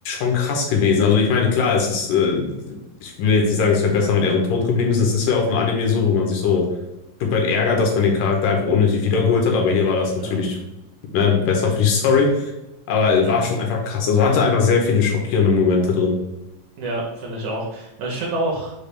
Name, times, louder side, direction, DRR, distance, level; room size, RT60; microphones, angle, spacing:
voice 1, 0.1-6.6 7.2-10.6 11.1-12.5 12.9-16.2, left 5 dB, 80° left, 0 dB, 2.3 m, -19 dB
voice 2, 16.8-18.7, right 1 dB, 75° right, -2 dB, 1.9 m, -27 dB
6.6 x 2.3 x 3.2 m, 0.94 s
omnidirectional pair, 4.0 m